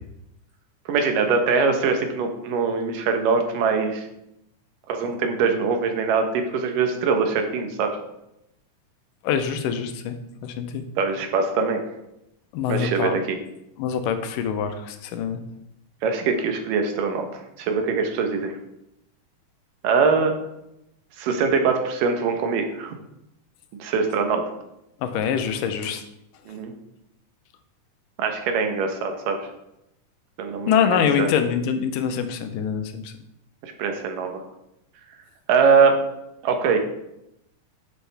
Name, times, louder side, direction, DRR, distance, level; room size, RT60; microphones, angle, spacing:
voice 1, 0.9-4.1 4.9-7.9 11.0-11.8 12.7-13.4 16.0-17.3 17.6-18.5 19.8-20.3 21.2-23.0 23.8-24.4 26.5-26.7 28.2-29.5 30.4-31.3 33.6-34.4 35.5-36.0 36.4-36.8, right 5 dB, 80° right, 5 dB, 2.7 m, -22 dB
voice 2, 9.2-10.2 10.4-10.8 12.5-13.2 13.8-15.4 25.0-26.0 30.7-33.1, left 7 dB, 85° left, 8 dB, 2.4 m, -24 dB
10.0 x 7.4 x 3.4 m, 0.85 s
omnidirectional pair, 3.8 m